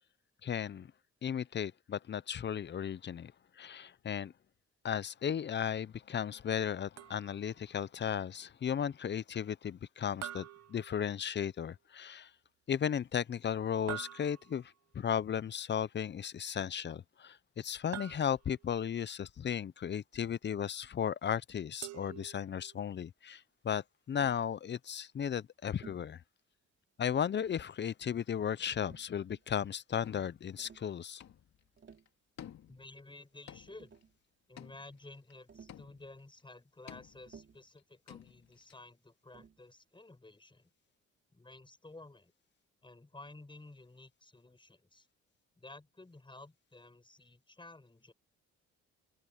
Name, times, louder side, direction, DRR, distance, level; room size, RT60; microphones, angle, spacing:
voice 1, 0.4-0.9 1.2-3.3 3.6-4.3 4.8-12.3 12.7-26.2 27.0-31.2, left 8 dB, 35° left, 0.6 m, -35 dB
sound 1, 7.0-7.6 10.2-11.5 13.9-14.8 17.9-18.7 21.8-22.8, right 12 dB, 55° right, 0.8 m, -46 dB
Tap, 24.2-24.5 25.8-26.1 27.2-27.7 28.8-29.6 30.6-30.9 31.6-32.1 33.3-33.4 33.7-34.2 35.5-35.9 37.3-37.7 39.3-39.7, right 6 dB, 40° right, 3.0 m, -57 dB
sound 2, 30.0-30.6 31.2-31.7 31.9-32.1 32.4-33.0 33.5-34.0 34.6-35.3 35.7-36.3 36.9-37.4 37.8-37.9 38.1-38.8, left 10 dB, 60° left, 2.4 m, -53 dB
voice 2, 32.7-34.0 34.5-40.7 41.3-42.3 42.8-45.1 45.6-48.1, left 2 dB, 15° left, 7.7 m, -53 dB
open air
cardioid pair, 90°, 30 cm